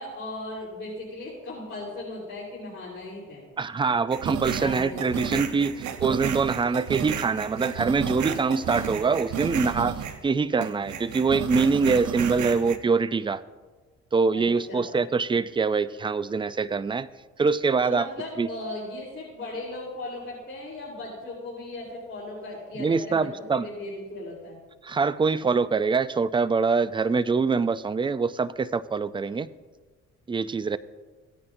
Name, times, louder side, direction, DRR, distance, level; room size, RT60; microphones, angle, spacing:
voice 1, 0.0-3.4 4.6-5.3 14.3-14.9 17.8-24.6, left 2 dB, 40° left, -6 dB, 4.0 m, -37 dB
voice 2, 3.6-9.9 10.2-13.4 14.1-17.1 17.4-18.1 18.4-18.5 22.8-23.7 24.8-29.5 30.3-30.8, right 4 dB, 15° right, 15 dB, 0.4 m, -24 dB
sound 1, 4.1-10.3 10.6-12.8, right 8 dB, 70° right, 0.9 m, -32 dB
17.0 x 9.7 x 2.6 m, 1.3 s
cardioid pair, 90°, 30 cm